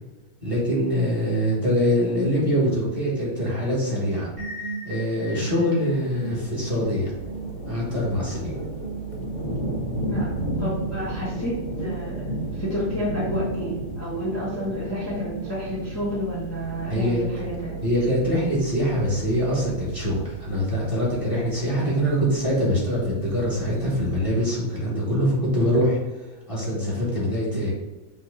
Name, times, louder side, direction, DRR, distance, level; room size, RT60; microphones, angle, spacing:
voice 1, 0.4-4.3 4.8-7.1 7.7-8.5 16.9-17.5 17.8-26.0 26.5-27.7, equal, 20° right, -7 dB, 1.5 m, -24 dB
sound 1, 4.4-16.0, right 3 dB, 60° right, 2.1 m, -40 dB
sound 2, 5.8-24.1, right 1 dB, 50° left, 0.5 m, -34 dB
sound 3, 7.1-24.3, right 10 dB, 80° left, 1.3 m, -40 dB
voice 2, 10.6-12.2 12.5-17.8, left 1 dB, 10° left, -7 dB, 0.8 m, -30 dB
5.3 x 2.6 x 3.8 m, 1.1 s
omnidirectional pair, 1.7 m